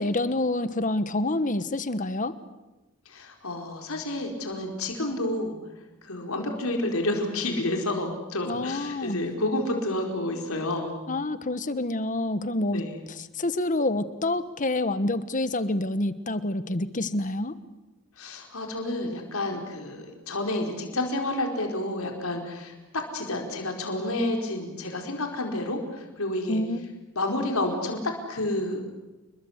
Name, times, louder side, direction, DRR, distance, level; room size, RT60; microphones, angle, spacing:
voice 1, 0.0-2.3 8.5-9.2 11.1-17.6 26.5-26.8, left 2 dB, 35° left, 13 dB, 1.2 m, -27 dB
voice 2, 3.1-5.6 6.0-11.0 12.7-12.9 18.2-26.6 27.2-28.0 28.3-28.8, left 1 dB, 80° left, 2 dB, 4.7 m, -30 dB
30.0 x 22.0 x 8.1 m, 1.1 s
head